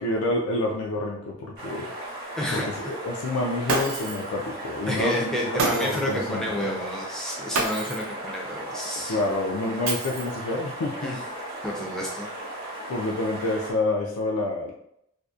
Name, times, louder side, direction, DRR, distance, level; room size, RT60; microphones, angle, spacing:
voice 1, 0.0-1.8 2.5-6.5 9.1-11.2 12.9-14.7, left 2 dB, 80° left, 0 dB, 0.3 m, -28 dB
sound 1, 1.6-13.7, right 1 dB, 45° right, 0.8 m, -37 dB
voice 2, 2.4-2.7 3.7-3.8 4.9-9.2 11.0-11.2 11.6-12.3, equal, ahead, -3 dB, 0.4 m, -30 dB
Shatter, 3.7-4.3 5.6-6.2 7.5-8.1 9.9-10.5, right 3 dB, 70° right, 0.4 m, -28 dB
2.6 x 2.0 x 2.4 m, 0.76 s
head